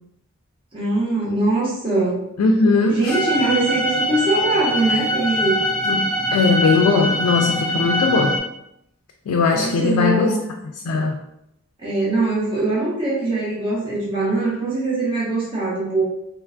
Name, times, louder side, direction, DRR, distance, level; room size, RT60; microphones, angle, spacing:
voice 1, 0.7-2.2 2.9-5.6 9.5-10.4 11.8-16.0, right 2 dB, 25° right, -7 dB, 0.8 m, -22 dB
voice 2, 2.4-3.2 5.9-8.4 9.3-10.3 10.8-11.2, left 4 dB, 90° left, 2 dB, 0.3 m, -19 dB
sound 1, 3.1-8.4, equal, ahead, 0.3 m, -23 dB
3.1 x 2.2 x 2.4 m, 0.81 s
head